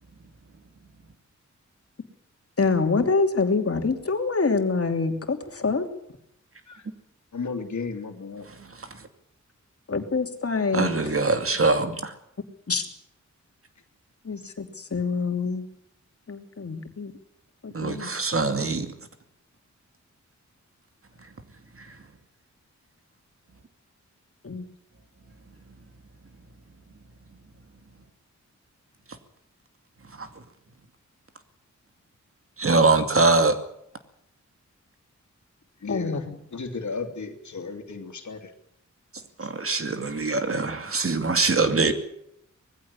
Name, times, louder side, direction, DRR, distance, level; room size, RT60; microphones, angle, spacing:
voice 1, 2.6-5.9 9.9-11.2 12.7-12.9 14.2-15.6 16.3-17.1 17.6-18.1 24.4-24.6 35.9-36.4, left 4 dB, 50° left, 2.9 m, -26 dB
voice 2, 7.3-8.5 14.4-14.5 35.8-36.2 36.5-38.5 39.4-39.5, left 4 dB, 75° left, 2.9 m, -34 dB
voice 3, 10.7-12.1 17.7-18.9 30.2-30.3 32.6-33.6 39.4-41.9, right 3 dB, 50° right, 2.5 m, -23 dB
20.5 x 15.5 x 9.8 m
wide cardioid pair, 90°, 30 cm